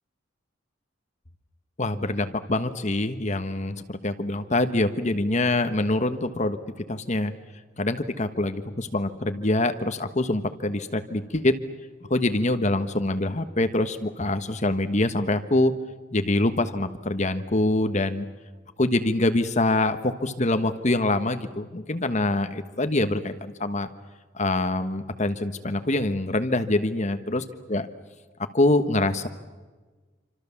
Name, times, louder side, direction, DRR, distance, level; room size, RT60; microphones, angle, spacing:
voice 1, 1.8-6.6 6.9-7.3 7.8-11.6 12.1-15.7 16.1-18.3 18.8-23.9 24.3-27.4 27.7-27.9 28.5-29.3, left 2 dB, 40° left, 9 dB, 1.3 m, -25 dB
28.0 x 26.0 x 7.2 m, 1.3 s
head